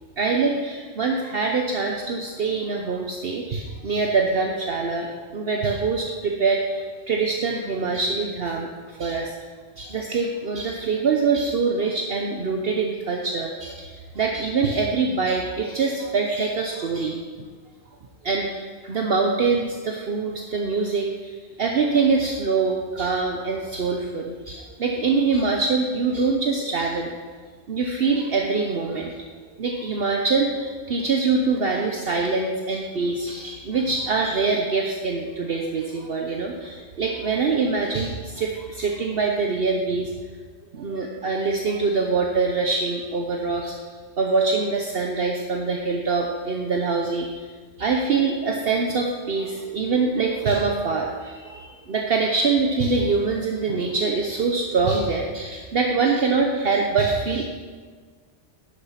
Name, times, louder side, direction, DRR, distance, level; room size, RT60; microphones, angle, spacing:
voice 1, 0.2-9.4 9.8-17.5 18.2-27.2 27.7-29.2 29.6-40.1 40.7-47.5 47.8-57.5, right 4 dB, 55° right, 1 dB, 1.0 m, -24 dB
11.0 x 8.0 x 5.8 m, 1.5 s
omnidirectional pair, 1.2 m